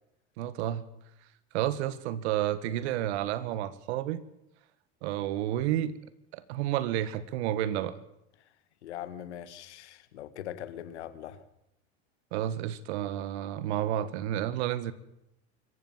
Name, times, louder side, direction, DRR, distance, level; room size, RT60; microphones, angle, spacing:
voice 1, 0.4-0.8 1.5-4.2 5.0-6.0 6.3-8.0 12.3-14.9, right 12 dB, 75° right, 16 dB, 1.6 m, -30 dB
voice 2, 8.8-11.4, left 11 dB, 90° left, 13 dB, 1.8 m, -41 dB
25.0 x 14.5 x 7.4 m, 0.86 s
supercardioid pair, 100°, 33 cm